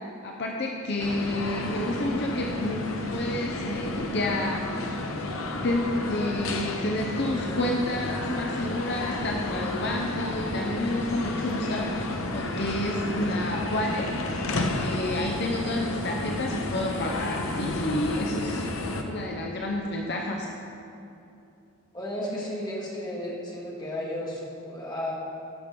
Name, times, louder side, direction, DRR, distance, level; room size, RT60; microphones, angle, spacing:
voice 1, 0.2-2.8 3.1-4.6 4.9-5.0 5.5-14.4 14.7-18.6 19.0-20.5, left 1 dB, 55° left, 0 dB, 0.8 m, -29 dB
sound 1, 1.0-19.0, left 2 dB, 85° left, 1.0 m, -31 dB
voice 2, 21.9-25.1, left 1 dB, 20° left, -5 dB, 2.1 m, -33 dB
16.5 x 6.1 x 5.3 m, 2.8 s
head